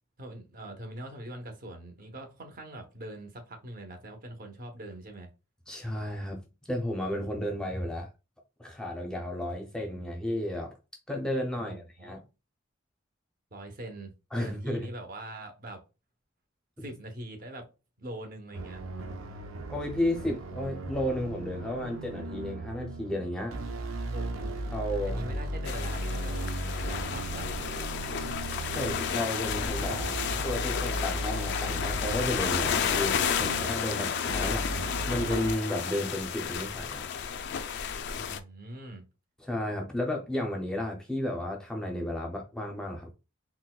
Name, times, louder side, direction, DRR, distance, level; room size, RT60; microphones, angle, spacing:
voice 1, 0.2-5.3 11.6-12.1 13.5-15.8 16.8-17.7 18.0-18.8 24.1-24.5 24.9-27.5 33.9-34.1 38.1-39.1, right 1 dB, 45° right, 0.7 m, -43 dB
voice 2, 5.7-6.4 6.7-8.1 8.6-10.7 11.1-12.2 14.3-14.9 19.7-23.6 24.7-25.3 28.2-28.3 28.7-37.0 39.4-43.1, left 1 dB, 5° left, 0.6 m, -33 dB
sound 1, 18.5-35.5, right 1 dB, 90° right, 0.5 m, -36 dB
sound 2, 25.7-38.4, left 7 dB, 60° left, 0.3 m, -32 dB
3.9 x 2.1 x 2.3 m
head